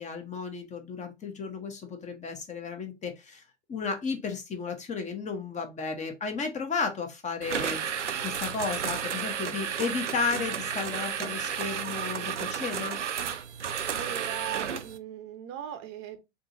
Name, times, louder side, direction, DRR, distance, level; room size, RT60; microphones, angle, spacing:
voice 1, 0.0-3.4 3.7-7.8 8.2-13.0, left 5 dB, 20° left, 0.9 m, -33 dB
sound 1, 7.4-15.0, right 8 dB, 85° right, 0.5 m, -32 dB
voice 2, 13.9-16.2, right 10 dB, 35° right, 0.8 m, -39 dB
3.8 x 3.7 x 2.7 m
figure-of-eight pair, 90°, 35 cm